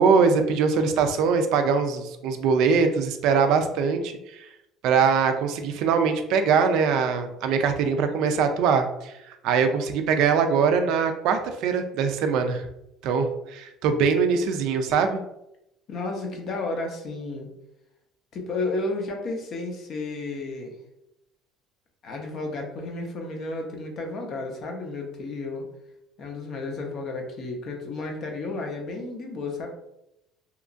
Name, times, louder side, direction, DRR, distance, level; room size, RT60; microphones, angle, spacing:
voice 1, 0.0-4.1 4.8-9.1 9.4-12.6 13.0-15.2, right 5 dB, 65° right, 6 dB, 0.3 m, -22 dB
voice 2, 15.9-17.5 18.3-20.7 22.0-25.7 26.2-29.7, left 2 dB, 45° left, 2 dB, 0.5 m, -32 dB
2.8 x 2.3 x 2.5 m, 0.86 s
cardioid pair, 150°, 0 cm